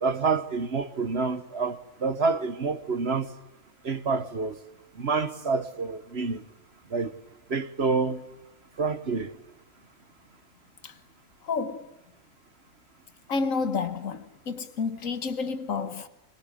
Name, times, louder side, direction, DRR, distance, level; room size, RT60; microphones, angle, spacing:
voice 1, 0.0-3.3 3.8-4.6 5.0-6.4 6.9-7.1 7.5-8.2 8.8-9.3, right 4 dB, 50° right, 1.4 m, -27 dB
voice 2, 11.4-11.9 13.3-16.1, left 4 dB, 65° left, 1.8 m, -30 dB
24.0 x 21.5 x 10.0 m
omnidirectional pair, 1.5 m